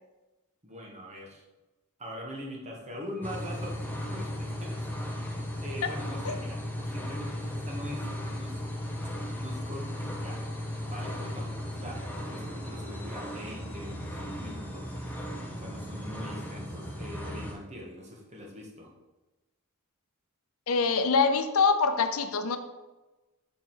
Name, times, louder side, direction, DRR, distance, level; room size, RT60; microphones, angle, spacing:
voice 1, 0.6-1.4 2.0-4.9 5.6-8.1 8.3-8.6 9.4-10.4 10.8-15.0 15.6-18.9, equal, 30° right, -1 dB, 1.3 m, -42 dB
sound 1, 3.2-17.5, left 1 dB, 10° left, 0.9 m, -36 dB
voice 2, 20.7-22.6, left 5 dB, 75° left, 9 dB, 0.6 m, -24 dB
5.8 x 4.7 x 4.4 m, 1.1 s
head